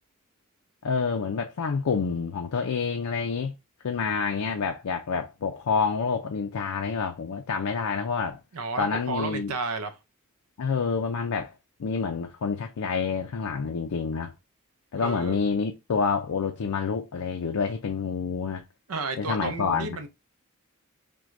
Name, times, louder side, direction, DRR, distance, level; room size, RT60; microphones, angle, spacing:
voice 1, 0.8-3.5 3.8-8.4 8.8-9.5 10.6-11.5 11.8-14.3 14.9-18.6 19.2-20.0, left 5 dB, 80° left, 0.5 m, -28 dB
voice 2, 8.5-10.0 14.9-15.4 18.9-20.1, right 3 dB, 75° right, 0.6 m, -32 dB
6.0 x 2.2 x 2.5 m
head